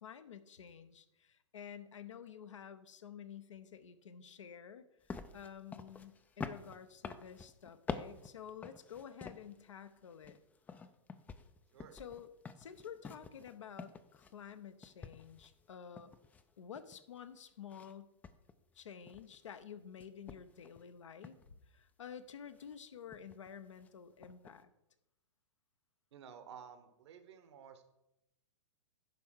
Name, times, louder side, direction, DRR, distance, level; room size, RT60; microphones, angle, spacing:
voice 1, 0.0-4.9 5.3-10.4 11.9-12.3 12.6-16.1 16.6-18.1 18.7-24.7, left 8 dB, 75° left, 10 dB, 0.8 m, -51 dB
sound 1, 5.1-9.6 10.0-14.6 14.8-17.2 17.7-17.9 18.2-19.6 20.0-20.8 21.2-21.5 22.5-22.8 23.1-23.5 23.8-23.9 24.2-24.6, left 5 dB, 10° left, 0.4 m, -48 dB
voice 2, 26.1-27.8, right 8 dB, 60° right, 9 dB, 1.2 m, -53 dB
10.5 x 3.5 x 6.4 m, 0.87 s
hypercardioid pair, 120°, 16 cm